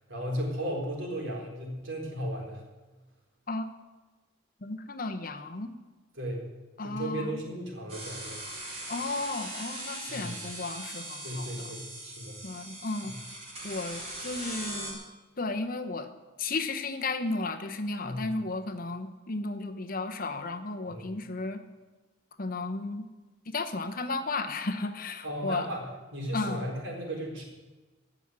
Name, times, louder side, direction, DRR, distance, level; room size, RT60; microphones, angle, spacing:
voice 1, 0.1-2.6 6.1-6.4 6.8-8.4 10.1-10.4 11.2-12.4 13.0-13.2 18.0-18.3 20.9-21.2 25.2-27.4, equal, 70° right, -1 dB, 4.0 m, -35 dB
voice 2, 4.6-5.7 6.8-7.4 8.9-11.7 12.4-13.2 13.6-15.0 15.4-16.1 16.4-21.6 22.4-23.1 23.5-25.7 26.3-26.7, left 3 dB, 45° left, 7 dB, 0.9 m, -34 dB
sound 1, 7.9-14.9, right 1 dB, 30° right, 4.1 m, -40 dB
16.0 x 6.1 x 9.6 m, 1.2 s
head